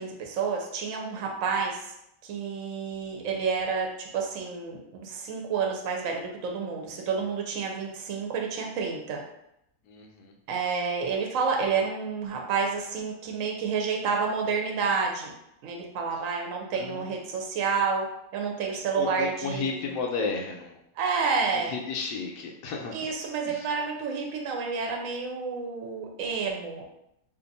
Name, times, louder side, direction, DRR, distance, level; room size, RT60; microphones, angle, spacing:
voice 1, 0.0-1.9 2.2-3.9 4.1-9.2 10.5-15.3 15.6-18.1 18.3-20.0 21.0-21.7 22.9-26.8, right 5 dB, 65° right, 0 dB, 1.0 m, -29 dB
voice 2, 9.8-10.3 16.8-17.2 18.9-20.8 21.5-23.1 23.5-23.7, left 4 dB, 75° left, 0 dB, 1.1 m, -33 dB
2.8 x 2.5 x 3.9 m, 0.81 s
omnidirectional pair, 1.7 m